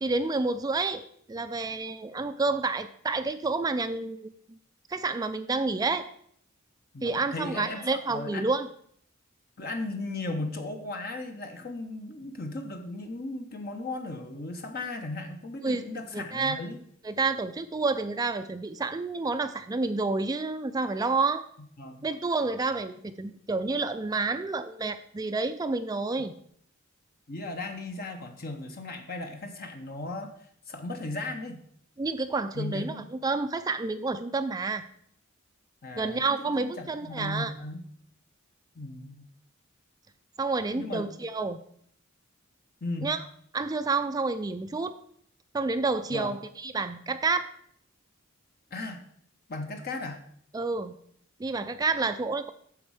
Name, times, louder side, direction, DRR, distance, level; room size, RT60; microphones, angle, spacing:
voice 1, 0.0-4.3 4.9-6.1 7.0-8.7 15.6-15.8 16.1-16.6 17.0-21.4 22.0-26.3 32.0-34.9 36.0-37.5 40.4-41.6 43.0-43.2 43.5-44.9 45.5-47.5 50.5-50.9 51.4-52.5, right 3 dB, 20° right, 10 dB, 0.4 m, -29 dB
voice 2, 6.9-8.5 9.6-16.8 21.8-22.1 27.3-30.3 30.7-31.6 32.5-33.1 35.8-37.8 38.8-39.3 40.8-41.1 42.8-43.1 46.1-46.4 48.7-49.0 49.5-50.2, left 2 dB, 50° left, 5 dB, 0.9 m, -36 dB
9.6 x 7.1 x 4.8 m, 0.64 s
head